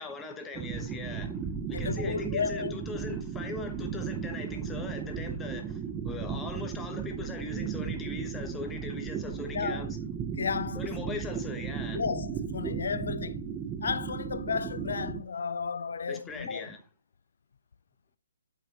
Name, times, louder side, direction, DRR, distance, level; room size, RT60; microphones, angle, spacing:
voice 1, 0.0-10.0 10.7-12.0 16.1-16.8, left 4 dB, 10° left, 1.1 m, -40 dB
sound 1, 0.5-15.2, right 7 dB, 15° right, 0.7 m, -35 dB
voice 2, 1.7-2.7 9.5-9.9 10.4-10.9 11.9-13.4 13.8-16.6, left 6 dB, 70° left, 0.4 m, -33 dB
8.5 x 6.0 x 3.0 m
hypercardioid pair, 155°, 0 cm